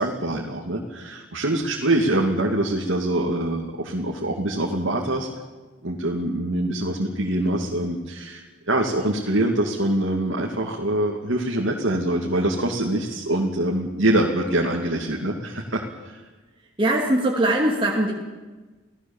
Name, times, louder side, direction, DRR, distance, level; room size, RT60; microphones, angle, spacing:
voice 1, 0.0-5.3 5.8-16.2, right 1 dB, 75° right, -1 dB, 2.4 m, -24 dB
voice 2, 16.8-18.1, right 1 dB, 25° right, -2 dB, 2.5 m, -21 dB
30.0 x 17.5 x 7.2 m, 1.3 s
head